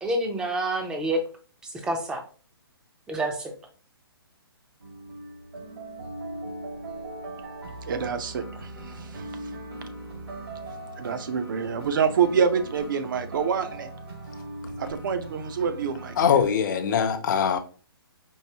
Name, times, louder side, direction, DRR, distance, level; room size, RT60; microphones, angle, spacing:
voice 1, 0.0-1.2 1.6-2.2 3.1-3.5, right 1 dB, 5° right, 4 dB, 0.4 m, -28 dB
sound 1, 4.8-16.5, right 2 dB, 80° right, 1.7 m, -39 dB
voice 2, 7.9-9.3 11.0-13.9 14.8-16.4, right 6 dB, 55° right, 9 dB, 0.5 m, -27 dB
voice 3, 16.2-17.6, left 7 dB, 50° left, 7 dB, 0.6 m, -22 dB
4.7 x 2.6 x 2.8 m, 0.39 s
hypercardioid pair, 150°, 13 cm